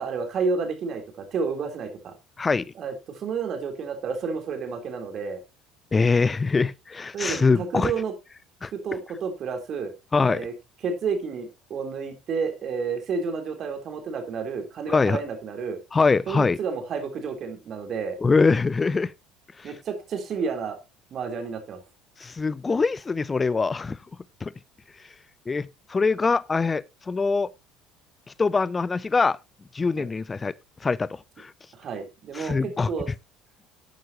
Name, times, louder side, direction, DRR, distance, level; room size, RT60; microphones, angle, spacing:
voice 1, 0.0-2.1 2.8-5.4 7.1-8.1 8.7-9.9 10.3-10.5 10.8-15.8 16.3-18.2 19.6-20.8 21.1-21.8 30.0-30.1 31.7-33.1, right 5 dB, 45° right, 3.5 m, -30 dB
voice 2, 5.9-7.9 8.6-8.7 10.1-10.4 14.9-15.2 15.9-16.6 18.2-19.1 19.6-19.7 22.2-24.0 24.4-24.5 25.5-27.5 28.4-29.4 29.7-30.5 30.8-31.1 31.4-31.5 32.4-32.9, left 4 dB, 25° left, 0.6 m, -23 dB
12.5 x 9.3 x 2.9 m
hypercardioid pair, 65°, 0 cm